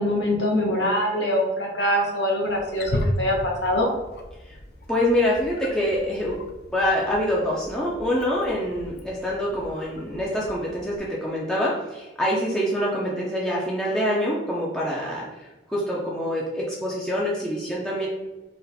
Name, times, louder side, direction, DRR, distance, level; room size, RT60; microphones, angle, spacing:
voice 1, 0.0-3.9, left 1 dB, 80° left, -1 dB, 1.1 m, -23 dB
Wild animals, 2.5-11.0, left 1 dB, 55° left, 0.5 m, -35 dB
voice 2, 4.9-6.4 6.7-18.1, equal, 5° left, -6 dB, 0.6 m, -25 dB
4.1 x 2.4 x 4.1 m, 1.1 s
head